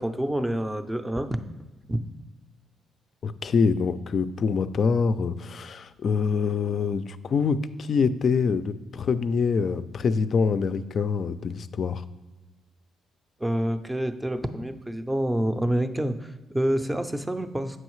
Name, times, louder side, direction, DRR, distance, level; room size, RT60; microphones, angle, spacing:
voice 1, 0.0-1.4 1.9-2.0 13.4-17.8, right 1 dB, 10° right, 9 dB, 0.5 m, -27 dB
voice 2, 3.2-12.0, left 5 dB, 50° left, 13 dB, 0.3 m, -25 dB
7.8 x 5.4 x 3.1 m, 1.2 s
cardioid pair, 90°, 0 cm